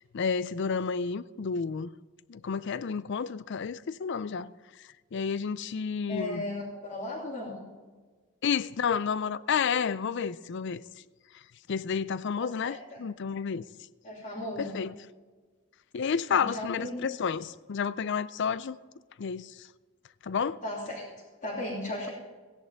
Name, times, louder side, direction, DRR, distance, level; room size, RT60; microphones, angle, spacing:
voice 1, 0.1-1.9 2.3-4.5 5.1-6.4 8.4-10.8 11.7-13.6 14.6-14.9 15.9-18.8 19.2-19.7 20.2-20.6, left 6 dB, 55° left, 0.4 m, -30 dB
voice 2, 6.1-7.6 12.4-13.0 14.0-14.8 16.3-17.1 20.6-21.0 21.4-22.1, left 1 dB, 35° left, 2.7 m, -36 dB
16.5 x 10.5 x 3.5 m
head